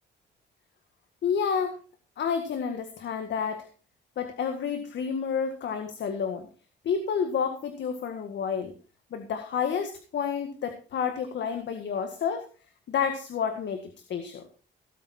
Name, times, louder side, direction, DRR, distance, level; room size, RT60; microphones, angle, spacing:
voice 1, 1.2-1.8 2.2-3.7 4.2-6.5 6.8-8.7 9.1-12.5 12.9-14.5, left 6 dB, 65° left, 7 dB, 1.9 m, -30 dB
17.5 x 8.5 x 4.4 m, 0.37 s
cardioid pair, 90°, 20 cm